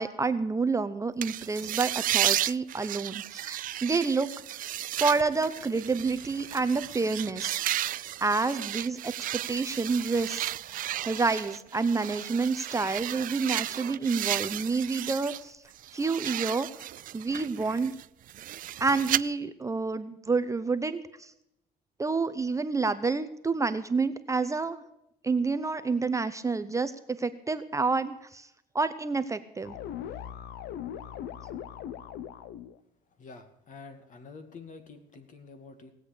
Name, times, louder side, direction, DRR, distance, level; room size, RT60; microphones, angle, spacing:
voice 1, 0.0-4.3 5.0-7.6 8.2-10.5 11.1-15.6 15.9-16.7 17.1-17.9 18.8-21.3 22.0-24.8 25.2-28.5 28.7-29.8, right 4 dB, 20° right, 11 dB, 0.8 m, -28 dB
sound 1, 1.2-15.4 15.8-19.2, right 13 dB, 55° right, 0.4 m, -33 dB
sound 2, 29.7-32.8, left 10 dB, 80° left, 0.9 m, -39 dB
voice 2, 33.2-35.9, left 4 dB, 50° left, 8 dB, 2.4 m, -48 dB
19.0 x 8.3 x 6.7 m, 0.81 s
cardioid pair, 110°, 17 cm